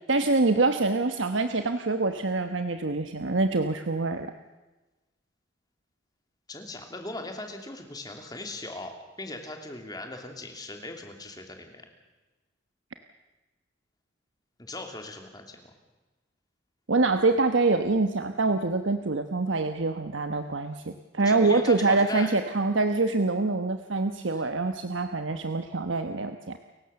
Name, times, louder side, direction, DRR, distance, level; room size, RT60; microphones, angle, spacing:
voice 1, 0.1-4.3 16.9-26.6, right 3 dB, 90° right, 7 dB, 1.1 m, -25 dB
voice 2, 6.5-11.9 14.6-15.7 21.2-22.3 24.3-24.6, left 2 dB, 20° left, 4 dB, 2.9 m, -39 dB
30.0 x 16.0 x 7.0 m, 1.1 s
head